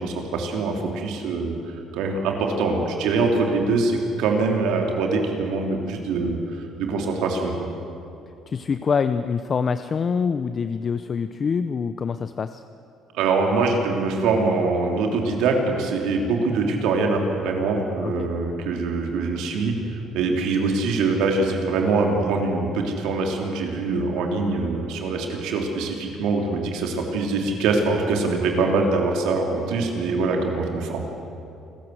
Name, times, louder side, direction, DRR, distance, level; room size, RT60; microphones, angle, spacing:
voice 1, 0.0-1.5 1.9-7.7 13.1-31.1, right 3 dB, 80° right, 2 dB, 3.4 m, -23 dB
voice 2, 8.5-12.6 18.0-18.3, left 6 dB, 40° left, 11 dB, 0.7 m, -25 dB
28.0 x 14.5 x 7.9 m, 2.7 s
supercardioid pair, 85°, 0 cm